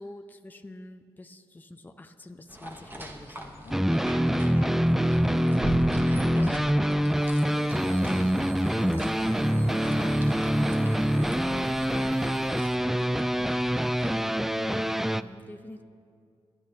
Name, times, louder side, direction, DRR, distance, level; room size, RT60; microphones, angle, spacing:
voice 1, 0.0-3.7 14.5-15.8, left 1 dB, 15° left, 6 dB, 0.7 m, -45 dB
sound 1, 2.5-14.2, right 1 dB, 20° right, 1.6 m, -41 dB
voice 2, 3.6-10.9 11.4-14.0, left 4 dB, 75° left, 3 dB, 1.2 m, -47 dB
sound 2, 3.7-15.2, equal, 5° right, 0.3 m, -25 dB
sound 3, 7.0-12.7, right 4 dB, 85° right, 1.0 m, -49 dB
29.0 x 11.0 x 2.8 m, 2.3 s
cardioid pair, 65°, 11 cm